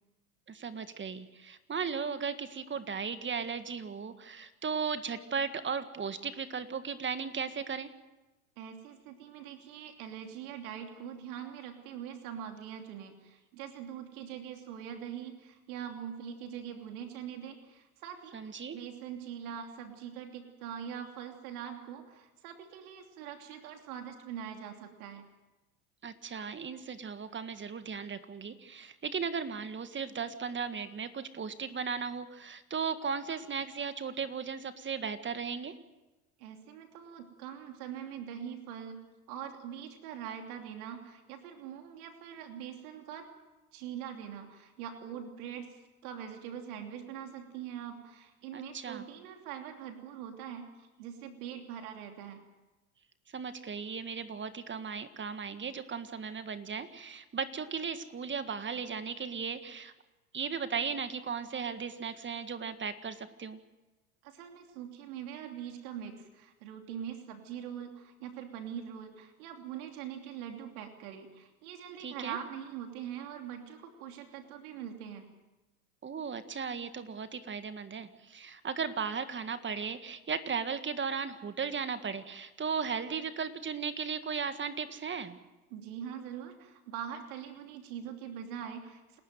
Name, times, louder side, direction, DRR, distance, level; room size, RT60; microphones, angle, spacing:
voice 1, 0.5-7.9 18.3-18.8 26.0-35.7 48.5-49.0 53.3-59.9 60.3-63.6 72.0-72.4 76.0-85.4, right 6 dB, 25° right, 10 dB, 1.8 m, -36 dB
voice 2, 8.6-18.4 18.7-25.3 36.4-39.0 39.3-43.3 43.7-52.4 64.2-75.3 85.7-89.2, right 9 dB, 70° right, 5 dB, 3.0 m, -43 dB
28.0 x 13.0 x 9.2 m, 1.1 s
hypercardioid pair, 85°, 46 cm